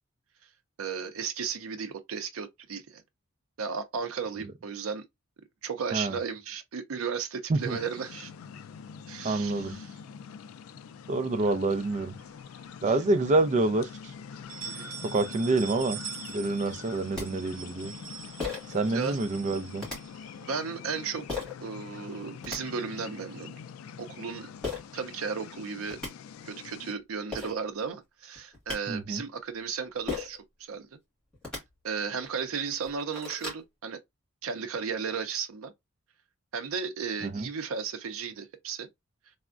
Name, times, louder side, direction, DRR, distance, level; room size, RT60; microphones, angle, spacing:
voice 1, 0.8-3.0 3.6-5.0 5.6-8.3 9.1-9.9 14.6-14.9 18.9-19.2 20.4-23.6 24.0-24.5 24.9-26.0 26.4-30.9 31.8-34.0 34.4-35.7 36.5-38.9, right 6 dB, 90° right, 0.5 m, -35 dB
sound 1, 7.6-26.9, left 7 dB, 85° left, 0.3 m, -45 dB
voice 2, 9.2-9.8 11.1-12.2 12.8-13.9 15.0-16.0 16.3-17.9 18.7-19.9 28.9-29.2 37.2-37.5, right 2 dB, 35° right, 0.4 m, -27 dB
sound 2, 11.8-12.7 13.2-13.3 13.6-13.7 14.3-20.5, right 7 dB, 70° right, 0.9 m, -44 dB
sound 3, 17.2-17.3 18.4-18.8 19.8-20.0 21.3-21.5 22.2-22.6 24.6-24.8 25.6-25.7 25.9-26.1 27.0-27.1 27.3-27.5 28.4-28.8 30.1-30.4 31.3-31.6 32.2-32.3 32.7-33.6, left 4 dB, 5° left, 1.8 m, -35 dB
3.4 x 2.1 x 2.4 m
head